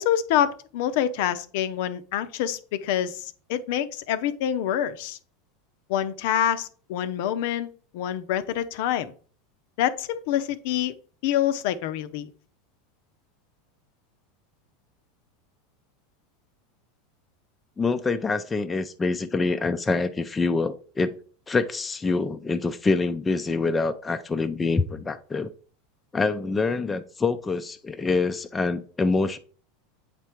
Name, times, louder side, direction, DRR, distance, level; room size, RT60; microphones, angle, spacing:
voice 1, 0.0-5.2 5.9-7.7 7.9-9.1 9.8-10.9 11.2-12.3, left 10 dB, 70° left, 0.7 m, -26 dB
voice 2, 17.8-21.1 21.5-25.5 26.1-29.4, left 3 dB, 15° left, 0.5 m, -25 dB
8.2 x 3.6 x 4.5 m
supercardioid pair, 110°, 0 cm